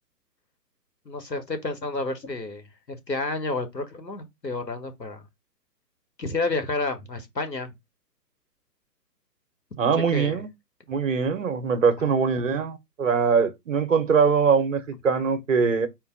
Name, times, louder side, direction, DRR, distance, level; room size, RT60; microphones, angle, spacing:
voice 1, 1.0-2.6 2.9-5.2 6.2-7.7 10.1-10.4 12.1-12.2, left 3 dB, 85° left, 1.5 m, -30 dB
voice 2, 9.8-10.5 10.9-15.9, right 6 dB, 50° right, 1.1 m, -22 dB
4.6 x 2.8 x 4.0 m
figure-of-eight pair, 130°, 49 cm